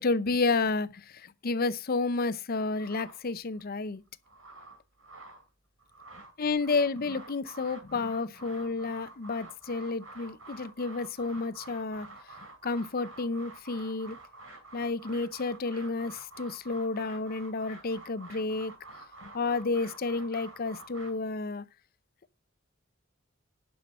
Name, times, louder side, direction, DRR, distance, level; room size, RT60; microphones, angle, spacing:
voice 1, 0.0-4.0 6.4-12.1 12.6-14.2 14.7-18.7 19.2-21.6, left 3 dB, 50° left, 0.6 m, -31 dB
sound 1, 2.8-3.6 4.1-5.5 5.8-21.1, right 2 dB, 85° right, 4.6 m, -49 dB
10.5 x 5.7 x 5.4 m
head